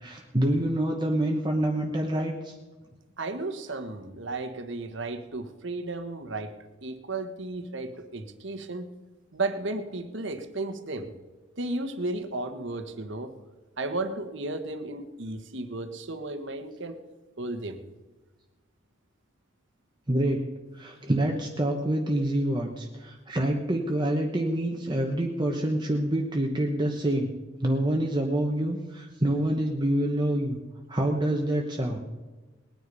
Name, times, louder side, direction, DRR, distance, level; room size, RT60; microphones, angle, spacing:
voice 1, 0.0-2.5 20.1-20.4 20.7-27.3 27.6-30.6 30.9-32.0, right 1 dB, 20° right, 1 dB, 1.1 m, -26 dB
voice 2, 3.2-6.5 6.8-8.9 9.3-11.1 11.6-13.3 13.8-17.0 17.4-17.8, right 2 dB, 60° right, 8 dB, 1.3 m, -34 dB
20.0 x 9.9 x 5.4 m, 1.2 s
head